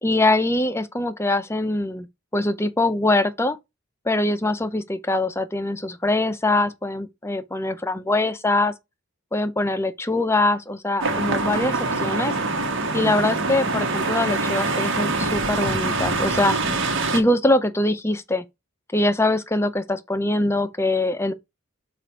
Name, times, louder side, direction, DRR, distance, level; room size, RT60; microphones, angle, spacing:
voice 1, 0.0-2.1 2.3-3.6 4.1-8.7 9.3-12.3 12.9-16.6 17.1-18.4 18.9-21.3, left 2 dB, 10° left, 0.5 m, -23 dB
sound 1, 11.0-17.2, right 3 dB, 65° right, 1.3 m, -24 dB
7.6 x 2.5 x 5.0 m
head